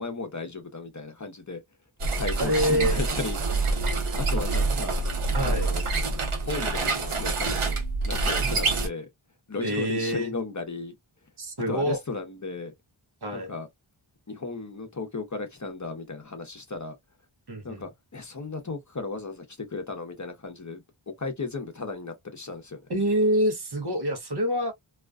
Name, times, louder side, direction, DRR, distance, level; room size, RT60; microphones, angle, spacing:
voice 1, 0.0-1.6 2.2-3.4 4.2-5.0 5.4-5.9 6.4-9.1 9.5-10.9 11.7-12.7 13.3-13.7 14.3-17.0 17.6-22.8, left 3 dB, 35° left, 0.7 m, -35 dB
sound 1, 2.0-8.9, right 3 dB, 80° right, 0.8 m, -26 dB
voice 2, 2.4-3.0 5.3-5.7 8.4-8.6 9.6-10.3 11.4-12.0 13.2-13.5 17.5-17.8 22.9-24.7, equal, 55° right, 0.8 m, -26 dB
2.4 x 2.2 x 2.3 m
wide cardioid pair, 50°, 49 cm